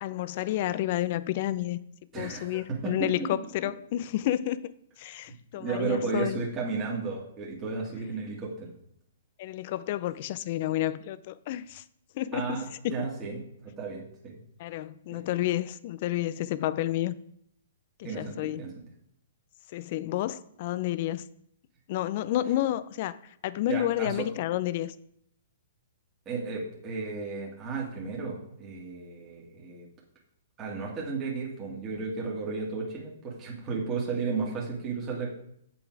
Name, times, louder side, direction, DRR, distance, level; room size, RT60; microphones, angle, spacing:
voice 1, 0.0-1.8 2.2-4.7 5.0-6.4 9.4-11.8 12.1-12.9 14.6-17.2 18.0-18.6 19.7-21.3 21.9-23.2 23.4-24.9, left 14 dB, 45° left, 15 dB, 0.6 m, -30 dB
voice 2, 2.1-3.3 5.5-8.7 12.3-14.4 15.1-15.2 18.0-18.7 23.7-24.3 26.3-29.9 30.6-35.3, right 4 dB, 25° right, -4 dB, 2.4 m, -33 dB
7.9 x 7.0 x 4.8 m, 0.72 s
hypercardioid pair, 130°, 0 cm